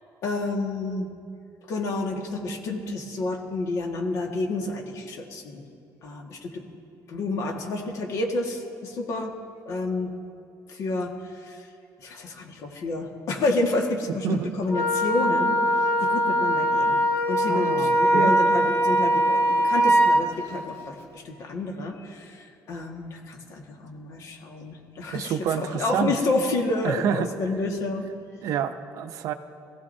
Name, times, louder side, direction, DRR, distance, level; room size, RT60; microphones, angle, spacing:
voice 1, 0.2-1.1 1.7-5.6 6.0-6.6 7.1-9.3 9.7-10.1 10.7-11.7 12.0-15.8 16.0-17.0 17.3-28.0, left 2 dB, 55° left, 2 dB, 1.7 m, -29 dB
Wind instrument woodwind instrument, 14.7-20.2, right 1 dB, 40° left, 1.2 m, -21 dB
voice 2, 17.5-18.3 25.1-26.1 26.8-27.3 28.4-29.3, right 8 dB, 60° right, 9 dB, 0.6 m, -28 dB
22.0 x 15.5 x 2.7 m, 2.4 s
cardioid pair, 165°, 6 cm